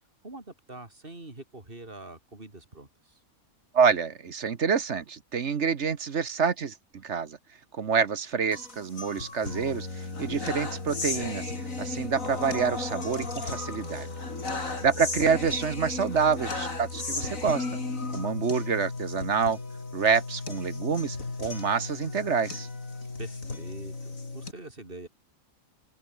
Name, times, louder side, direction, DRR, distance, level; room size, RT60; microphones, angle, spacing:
voice 1, 0.2-3.2 14.6-14.9 23.2-25.1, right 2 dB, 35° right, 4.4 m, -45 dB
voice 2, 3.7-7.4 7.7-11.5 11.8-14.1 14.6-17.7 18.1-19.6 19.9-22.7, right 6 dB, 55° right, 1.4 m, -27 dB
sound 1, 8.5-24.5, left 3 dB, 65° left, 4.1 m, -35 dB
open air
omnidirectional pair, 1.5 m